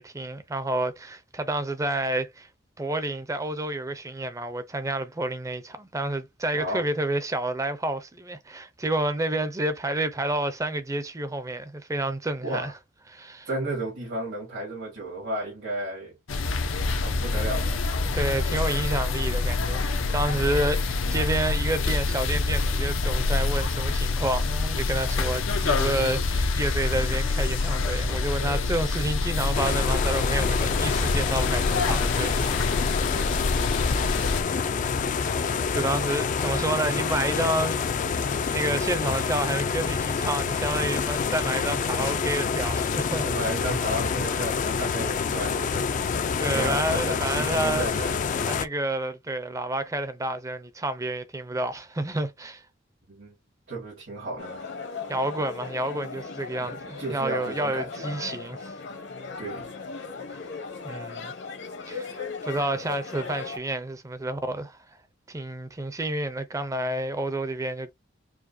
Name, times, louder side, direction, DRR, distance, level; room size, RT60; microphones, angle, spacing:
voice 1, 0.0-2.5 2.8-12.7 13.1-13.5 18.1-32.5 33.0-33.2 35.7-38.0 38.5-43.5 46.4-47.9 48.5-52.6 55.1-58.7 60.8-61.3 61.9-64.8 65.3-67.9, right 1 dB, 15° right, 0.5 m, -29 dB
voice 2, 6.5-6.9 12.4-12.7 13.5-16.1 17.0-17.9 43.1-45.9 46.4-48.2 53.1-53.3 53.7-54.7 56.6-58.1 59.4-59.7, right 1 dB, 75° right, 1.7 m, -33 dB
sound 1, 16.3-34.4, left 3 dB, 90° left, 0.7 m, -26 dB
sound 2, 29.5-48.7, left 5 dB, 40° left, 0.3 m, -27 dB
sound 3, 54.4-63.6, left 4 dB, 65° left, 0.9 m, -37 dB
4.7 x 2.2 x 2.6 m
head